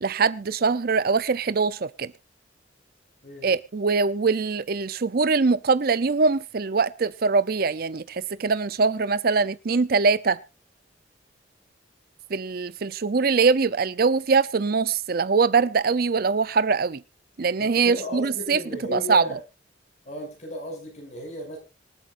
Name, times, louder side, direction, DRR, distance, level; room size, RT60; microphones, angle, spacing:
voice 1, 0.0-2.1 3.4-10.4 12.3-17.0 17.4-18.6 18.9-19.3, right 4 dB, 50° right, 0.5 m, -22 dB
voice 2, 3.2-3.6 17.6-19.4 20.0-21.6, left 1 dB, 40° left, 6.5 m, -35 dB
26.0 x 8.7 x 2.5 m
head